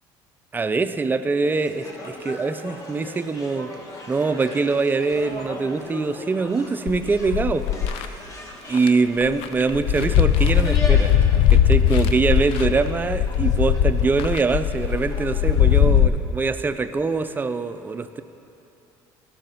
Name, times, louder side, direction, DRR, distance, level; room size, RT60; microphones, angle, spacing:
voice 1, 0.5-3.7 4.1-7.7 7.9-8.2 8.7-11.1 11.5-18.2, right 4 dB, 20° right, 11 dB, 0.4 m, -23 dB
sound 1, 1.4-15.8, left 1 dB, 30° left, 1.2 m, -39 dB
sound 2, 6.9-8.0 8.7-8.9 9.2-16.1, left 9 dB, 65° left, 0.4 m, -19 dB
12.0 x 6.4 x 3.9 m, 2.9 s
supercardioid pair, 95°, 10 cm